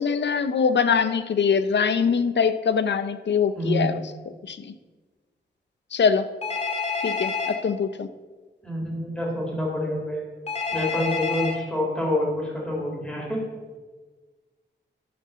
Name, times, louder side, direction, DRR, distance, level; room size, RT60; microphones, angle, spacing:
voice 1, 0.0-4.7 5.9-6.3 7.0-8.1, left 6 dB, 75° left, 12 dB, 0.6 m, -23 dB
voice 2, 3.6-3.9 8.6-10.2 10.7-13.4, left 1 dB, 5° left, -3 dB, 3.5 m, -27 dB
Telephone, 6.4-7.5 10.5-11.5, left 5 dB, 35° left, 1.9 m, -28 dB
10.5 x 6.9 x 6.7 m, 1.3 s
wide cardioid pair, 145°, 18 cm